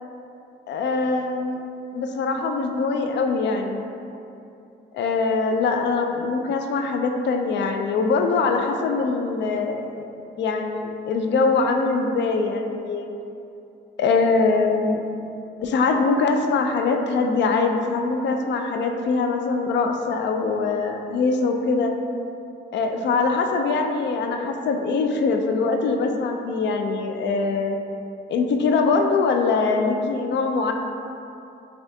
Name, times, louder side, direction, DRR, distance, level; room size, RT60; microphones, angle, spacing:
voice 1, 0.7-1.6 1.9-3.9 4.9-10.1 10.4-13.1 14.0-15.0 15.6-21.9 22.7-27.8 28.3-30.7, left 4 dB, 65° left, 4 dB, 0.4 m, -23 dB
5.6 x 2.4 x 2.7 m, 2.7 s
cardioid pair, 90°, 20 cm